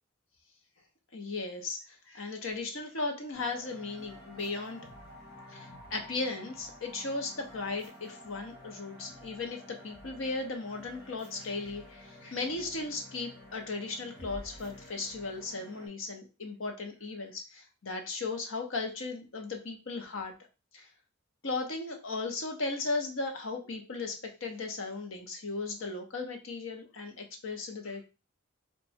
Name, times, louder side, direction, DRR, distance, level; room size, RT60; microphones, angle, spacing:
voice 1, 1.1-4.8 5.4-20.3 20.7-20.9 21.4-28.0, left 3 dB, 90° left, 4 dB, 0.9 m, -36 dB
sound 1, 3.3-15.9, left 1 dB, 55° left, 2.2 m, -50 dB
3.3 x 2.3 x 4.2 m, 0.30 s
head